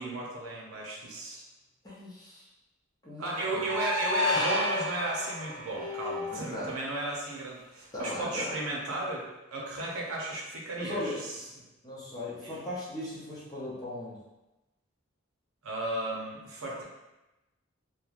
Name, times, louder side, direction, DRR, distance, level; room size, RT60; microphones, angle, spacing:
voice 1, 0.0-1.4 3.2-11.5 12.4-12.6 15.6-16.8, right 2 dB, 75° right, -3 dB, 0.7 m, -34 dB
voice 2, 1.8-2.5 3.0-3.6 6.5-6.7 7.9-8.4 10.8-11.2 11.8-14.2, left 1 dB, 15° left, -8 dB, 0.6 m, -38 dB
sound 1, 3.3-6.5, left 2 dB, 10° right, 1.3 m, -31 dB
3.1 x 2.2 x 2.4 m, 1.0 s
head